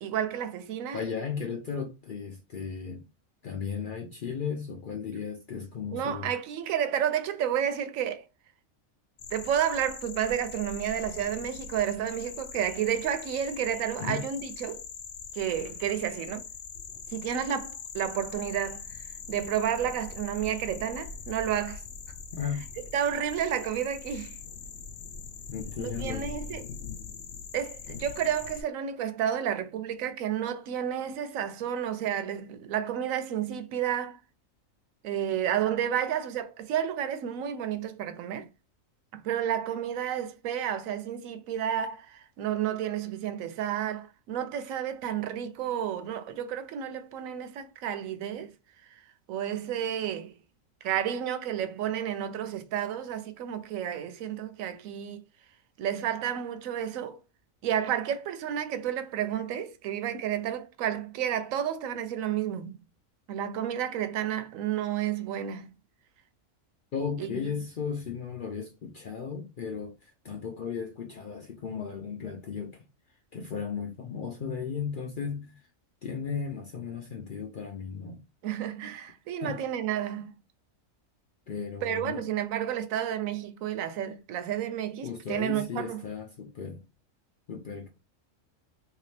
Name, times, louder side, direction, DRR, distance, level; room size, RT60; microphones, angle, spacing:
voice 1, 0.0-1.0 5.9-8.3 9.3-14.8 15.3-16.5 17.1-21.8 22.9-24.4 25.8-26.7 27.5-34.2 35.0-38.5 39.2-48.5 49.3-50.3 50.8-55.2 55.8-57.2 57.6-62.8 63.3-65.7 67.2-67.5 78.4-80.4 81.8-86.0, right 9 dB, 80° right, 1.0 m, -31 dB
voice 2, 0.9-3.1 3.4-6.3 14.0-14.3 22.3-22.7 25.5-26.4 66.9-72.8 73.3-75.6 76.0-78.2 79.4-79.6 81.5-82.3 85.0-86.8 87.5-87.9, left 6 dB, 60° left, 0.5 m, -35 dB
sound 1, 9.2-28.6, left 6 dB, 90° left, 1.0 m, -42 dB
3.1 x 2.8 x 3.2 m
omnidirectional pair, 1.4 m